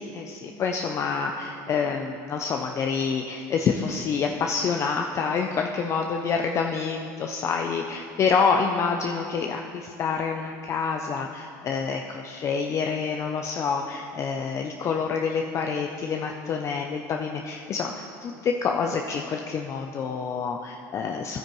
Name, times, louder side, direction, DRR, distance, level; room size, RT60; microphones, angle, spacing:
voice 1, 0.1-21.4, left 5 dB, 35° left, 3 dB, 0.5 m, -27 dB
12.5 x 9.1 x 3.0 m, 2.5 s
cardioid pair, 125°, 8 cm